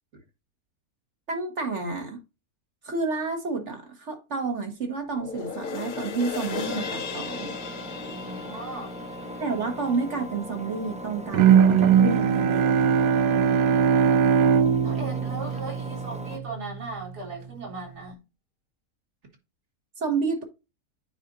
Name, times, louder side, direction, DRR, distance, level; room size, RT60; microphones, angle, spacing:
voice 1, 1.3-2.2 2.8-7.5 9.4-12.9 20.0-20.4, right 4 dB, 50° right, 1.8 m, -30 dB
sound 1, 5.1-11.7 12.1-12.2, left 6 dB, 45° left, 0.6 m, -37 dB
Engine, 6.4-16.4, equal, 10° right, 0.5 m, -39 dB
voice 2, 8.1-9.0 14.8-18.2, right 3 dB, 85° right, 3.5 m, -38 dB
Bowed string instrument, 11.3-16.4, right 7 dB, 70° right, 1.0 m, -20 dB
9.3 x 5.3 x 2.6 m
omnidirectional pair, 1.7 m